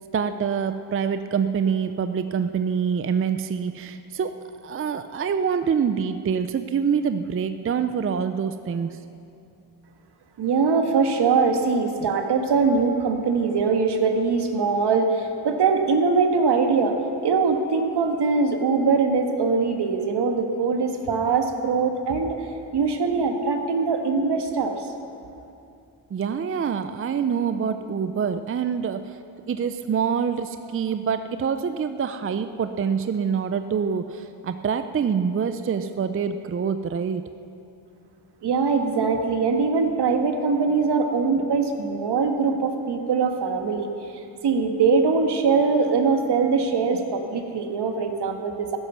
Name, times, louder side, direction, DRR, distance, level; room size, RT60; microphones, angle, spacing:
voice 1, 0.1-4.3 4.6-9.0 26.1-29.2 29.5-37.2, right 6 dB, 30° right, 10 dB, 0.5 m, -25 dB
voice 2, 10.4-22.4 22.7-24.9 38.4-48.8, right 4 dB, 65° right, 5 dB, 1.5 m, -22 dB
14.5 x 11.0 x 6.8 m, 2.6 s
cardioid pair, 115°, 43 cm